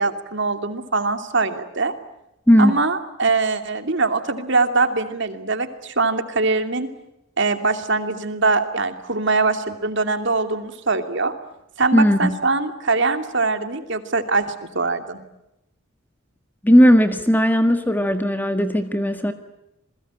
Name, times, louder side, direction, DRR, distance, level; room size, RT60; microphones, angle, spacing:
voice 1, 0.0-1.9 2.6-6.9 7.4-11.3 11.8-14.5 14.7-15.2, right 3 dB, 60° right, 8 dB, 2.7 m, -22 dB
voice 2, 2.5-2.8 11.9-12.3 16.6-19.3, equal, 10° left, 8 dB, 1.6 m, -16 dB
28.5 x 21.5 x 8.9 m, 0.86 s
head